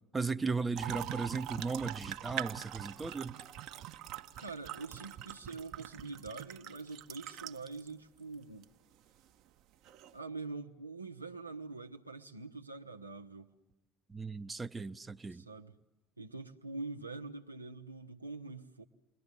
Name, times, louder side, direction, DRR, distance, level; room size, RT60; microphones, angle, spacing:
voice 1, 0.1-3.3 14.1-15.4, right 4 dB, 20° right, 1.0 m, -36 dB
sound 1, 0.8-7.9 8.6-8.7 9.9-10.1, right 12 dB, 55° right, 1.2 m, -43 dB
voice 2, 4.4-8.7 10.1-13.5 15.3-15.8 16.2-18.8, right 3 dB, 90° right, 1.2 m, -44 dB
30.0 x 22.5 x 8.3 m
figure-of-eight pair, 60°, 0 cm